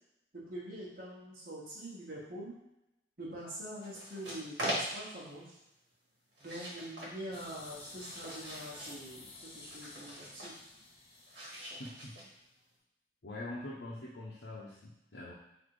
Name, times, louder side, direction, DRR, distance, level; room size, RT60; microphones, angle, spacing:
voice 1, 0.3-2.6 3.2-5.6 6.4-10.5, right 1 dB, 50° right, -6 dB, 1.2 m, -44 dB
sound 1, 3.8-5.2 6.3-7.2 7.7-9.0 9.7-10.6 11.3-12.5, right 1 dB, 75° right, 1.4 m, -41 dB
sound 2, 7.3-12.4, left 3 dB, 30° left, 0.5 m, -52 dB
voice 2, 11.8-12.2 13.2-15.3, left 2 dB, 75° left, -7 dB, 0.8 m, -44 dB
4.0 x 2.7 x 4.7 m, 0.88 s
head